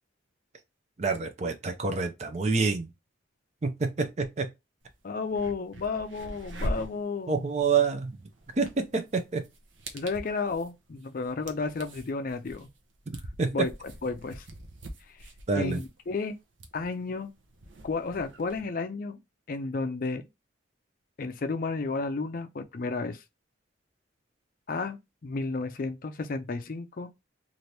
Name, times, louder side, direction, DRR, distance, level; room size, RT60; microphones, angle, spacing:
voice 1, 1.0-2.9 3.6-3.9 4.2-4.5 7.3-8.1 8.6-9.4 13.4-13.5 15.5-15.8, right 4 dB, 35° right, 0.5 m, -27 dB
sound 1, 4.8-4.9 5.2-18.6, equal, 75° right, 0.7 m, -42 dB
voice 2, 5.0-7.5 9.9-12.7 13.5-14.5 15.6-16.4 16.7-17.3 17.8-19.2 19.5-20.3 21.2-23.2 24.7-27.1, left 4 dB, 45° left, 0.4 m, -32 dB
2.8 x 2.5 x 3.2 m
head